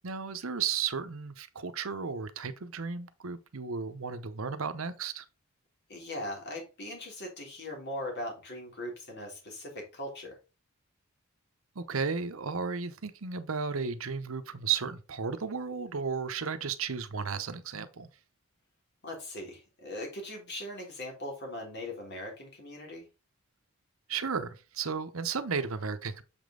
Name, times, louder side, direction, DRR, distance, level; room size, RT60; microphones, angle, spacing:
voice 1, 0.0-5.2 11.8-18.1 24.1-26.2, right 6 dB, 70° right, 0.8 m, -34 dB
voice 2, 5.9-10.4 19.0-23.1, left 1 dB, 55° left, 3.2 m, -40 dB
7.0 x 5.2 x 3.8 m
head